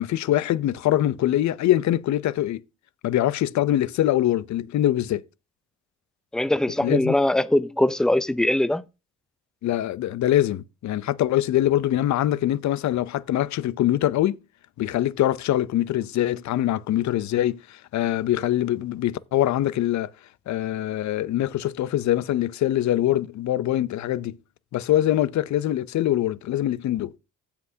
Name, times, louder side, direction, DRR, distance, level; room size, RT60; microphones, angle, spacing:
voice 1, 0.0-2.6 3.0-5.2 6.8-7.1 9.6-14.4 14.8-20.1 20.5-24.4 24.7-27.1, left 13 dB, 65° left, 0.6 m, -23 dB
voice 2, 6.3-8.8, left 1 dB, ahead, 0.4 m, -21 dB
16.0 x 5.9 x 2.8 m
cardioid pair, 90°, 30 cm